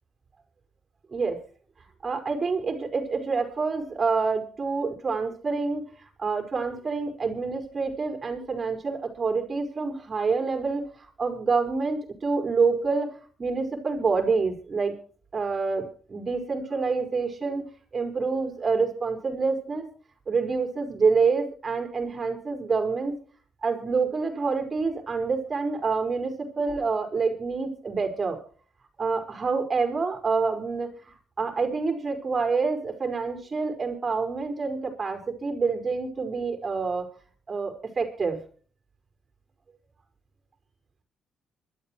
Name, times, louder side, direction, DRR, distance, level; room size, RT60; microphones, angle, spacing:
voice 1, 2.0-14.9 15.3-17.7 17.9-19.9 20.3-23.1 23.6-28.4 29.0-37.1 37.5-38.4, right 4 dB, 35° right, 5 dB, 5.0 m, -27 dB
25.5 x 12.5 x 3.2 m, 0.43 s
cardioid pair, 90°, 0 cm